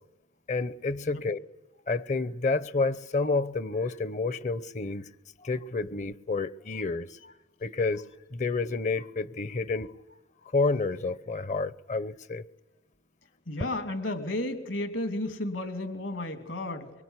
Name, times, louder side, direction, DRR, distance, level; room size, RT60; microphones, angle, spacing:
voice 1, 0.5-1.4 1.9-5.1 5.4-7.3 7.6-8.0 8.3-9.9 10.4-12.5, left 3 dB, 40° left, 0.9 m, -29 dB
voice 2, 13.5-16.9, left 1 dB, 70° left, 2.9 m, -33 dB
24.5 x 23.5 x 9.9 m
head